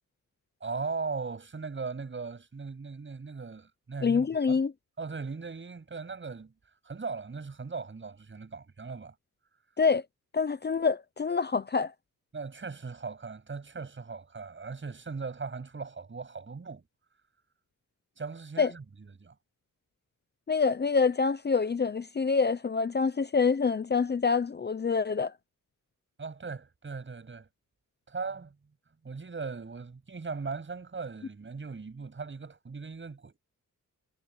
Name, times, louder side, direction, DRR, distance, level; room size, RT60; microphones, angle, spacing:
voice 1, 0.6-4.6 5.0-6.5 6.8-9.1 12.3-16.9 18.2-19.3 26.2-27.5 28.1-28.6 29.0-33.4, right 4 dB, 35° right, 7.8 m, -38 dB
voice 2, 4.0-4.7 9.8-10.0 10.3-11.9 18.6-18.7 20.5-25.3, left 5 dB, 30° left, 0.7 m, -26 dB
wide cardioid pair, 130°, 33 cm